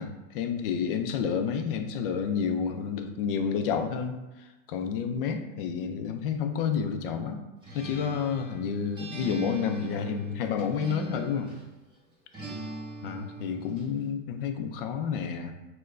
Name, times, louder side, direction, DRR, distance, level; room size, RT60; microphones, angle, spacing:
voice 1, 0.0-4.2 4.7-7.4 7.7-11.5 13.0-15.5, left 7 dB, 45° left, 6 dB, 0.4 m, -30 dB
Acoustic guitar, 7.6-11.7 12.3-13.9, right 2 dB, 10° right, 0.7 m, -40 dB
6.3 x 2.2 x 2.4 m, 1.1 s
supercardioid pair, 155°, 40 cm